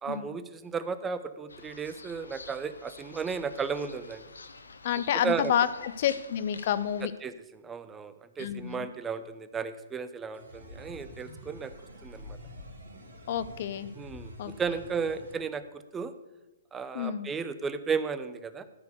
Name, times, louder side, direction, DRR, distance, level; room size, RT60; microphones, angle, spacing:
voice 1, 0.0-4.2 5.2-5.5 7.2-11.7 12.0-12.4 14.0-15.6 15.9-16.1 16.7-18.6, right 5 dB, 15° right, 12 dB, 0.7 m, -34 dB
sound 1, 1.5-7.0, left 4 dB, 85° left, 0.8 m, -48 dB
voice 2, 4.8-7.1 8.4-8.9 13.3-13.9 14.4-14.5 16.9-17.3, left 9 dB, 50° left, 14 dB, 0.6 m, -29 dB
sound 2, 10.3-15.3, left 1 dB, 85° right, 2.5 m, -47 dB
13.0 x 4.5 x 6.9 m, 1.0 s
hypercardioid pair, 125°, 0 cm